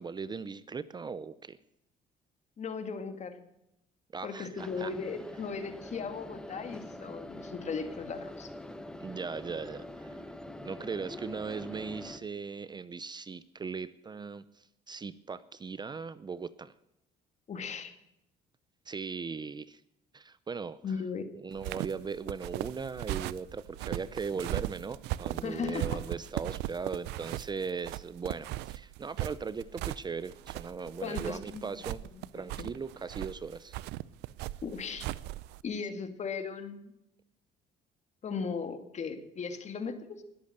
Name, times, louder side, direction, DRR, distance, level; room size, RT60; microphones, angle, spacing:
voice 1, 0.0-1.6 4.1-4.9 9.0-10.2 10.6-16.7 18.9-19.8 20.1-21.0 21.4-32.0 32.3-33.8, right 5 dB, 25° right, 16 dB, 0.6 m, -39 dB
voice 2, 2.6-3.5 4.2-8.5 17.5-18.0 20.8-21.4 25.4-26.0 31.0-31.6 32.3-32.7 34.6-35.1 35.6-36.9 38.2-40.2, left 5 dB, 45° left, 9 dB, 2.1 m, -37 dB
sound 1, 4.6-12.2, left 1 dB, 5° left, 1.3 m, -44 dB
sound 2, 21.5-35.6, right 16 dB, 90° right, 0.6 m, -38 dB
20.5 x 8.6 x 6.6 m, 0.85 s
cardioid pair, 110°, 17 cm